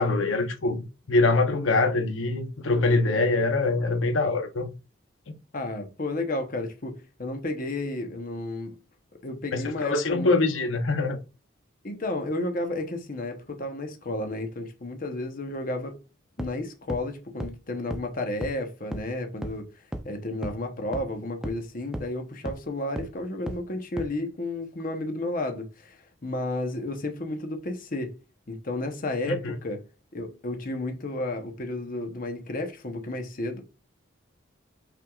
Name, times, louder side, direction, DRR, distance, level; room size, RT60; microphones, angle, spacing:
voice 1, 0.0-4.7 9.5-11.2 29.4-29.6, left 3 dB, 90° left, 0.8 m, -24 dB
voice 2, 5.5-8.8 9.2-10.3 10.7-10.8 11.8-16.0 16.4-19.6 20.0-28.1 28.5-29.8 30.1-33.6, left 2 dB, 45° left, 0.8 m, -32 dB
sound 1, 16.4-16.5 16.9-17.0 17.4-17.5 17.9-18.0 18.4-18.5 18.9-19.0 19.4-19.5 19.9-20.0 20.4-20.5 20.9-21.0 21.4-21.5 21.9-22.0 22.4-22.5 23.0-23.1 23.5-23.6 24.0-24.1, equal, 5° right, 0.5 m, -32 dB
5.8 x 3.4 x 2.3 m
head